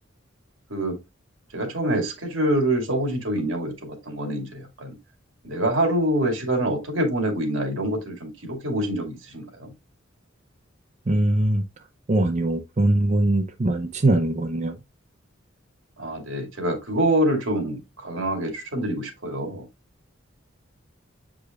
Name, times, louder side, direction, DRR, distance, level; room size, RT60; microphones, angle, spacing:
voice 1, 1.5-5.0 5.4-9.7 16.0-19.7, right 1 dB, 80° right, 2.3 m, -26 dB
voice 2, 11.1-11.6 12.1-14.7, right 1 dB, 35° right, 0.6 m, -21 dB
8.1 x 4.9 x 2.4 m
head